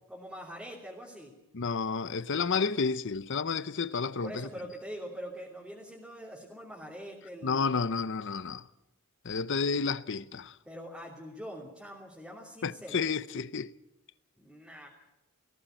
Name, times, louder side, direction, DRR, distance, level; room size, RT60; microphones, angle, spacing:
voice 1, 0.1-1.3 2.5-2.7 4.2-7.7 10.6-13.1 14.4-14.9, equal, 5° right, 3.0 m, -44 dB
voice 2, 1.5-4.5 7.4-8.7 9.2-10.6 12.6-13.7, left 5 dB, 60° left, 0.7 m, -31 dB
19.0 x 16.5 x 9.1 m
head